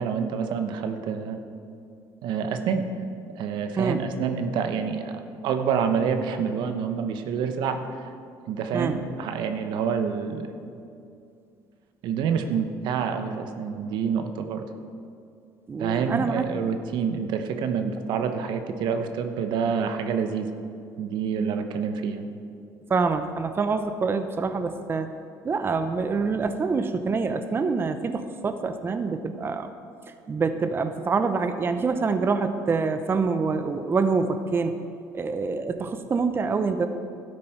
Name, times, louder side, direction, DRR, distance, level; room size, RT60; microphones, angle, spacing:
voice 1, 0.0-1.4 2.2-2.9 3.4-8.1 8.5-10.6 12.0-14.6 15.8-20.5 21.0-22.3, right 6 dB, 75° right, 7 dB, 0.9 m, -27 dB
voice 2, 15.7-16.4 22.9-25.2 25.4-29.7 30.3-34.8 35.1-36.9, right 4 dB, 30° right, 9 dB, 0.6 m, -26 dB
12.0 x 9.7 x 4.6 m, 2.5 s
cardioid pair, 95°, 8 cm